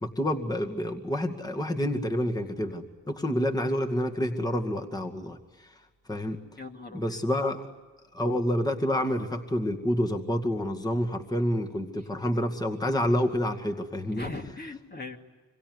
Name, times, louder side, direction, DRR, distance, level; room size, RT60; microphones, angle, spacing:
voice 1, 0.0-5.8 6.1-6.4 6.9-7.7 8.1-14.3, equal, 10° left, 3 dB, 2.2 m, -28 dB
voice 2, 6.6-7.2 14.1-15.2, left 3 dB, 30° left, 3 dB, 2.4 m, -39 dB
26.0 x 23.0 x 9.6 m, 1.3 s
cardioid pair, 70°, 32 cm